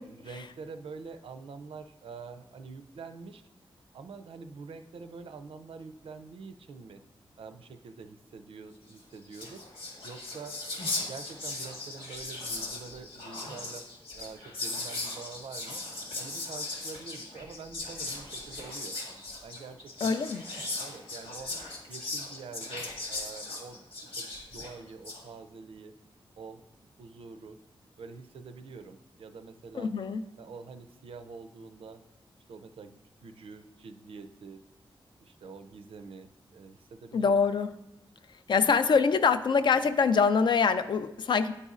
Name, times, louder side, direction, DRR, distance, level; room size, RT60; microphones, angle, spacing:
voice 1, 0.0-3.4 3.9-7.0 7.4-9.7 10.0-13.9 14.1-15.8 16.2-19.0 19.4-20.2 20.8-21.5 21.9-25.9 26.4-27.6 28.0-29.9 30.4-32.0 32.5-34.6 35.2-37.4 38.5-38.6, right 4 dB, 85° right, 8 dB, 0.4 m, -46 dB
Whispering, 9.0-9.1 9.2-25.2, left 2 dB, 90° left, 1.4 m, -38 dB
voice 2, 20.0-20.4 29.7-30.2 37.1-37.7 38.5-41.5, left 5 dB, 60° left, 11 dB, 0.3 m, -24 dB
9.6 x 4.1 x 2.4 m, 0.86 s
wide cardioid pair, 125°, 9 cm